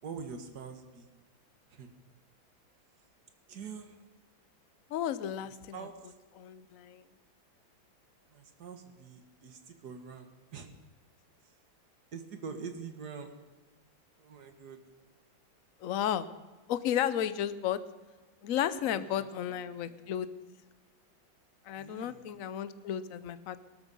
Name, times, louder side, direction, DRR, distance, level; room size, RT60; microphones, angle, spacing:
voice 1, 0.0-1.1 1.7-1.9 3.5-4.0 5.4-6.1 8.3-10.7 11.4-11.5 12.1-13.3 14.2-14.8 18.9-20.0 21.8-22.4, right 5 dB, 55° right, 7 dB, 2.0 m, -45 dB
voice 2, 4.9-5.9 6.4-7.0 15.8-16.3 16.7-17.8 18.4-20.3 21.6-23.6, left 10 dB, 60° left, 14 dB, 0.9 m, -33 dB
18.0 x 13.0 x 5.4 m, 1.3 s
omnidirectional pair, 2.1 m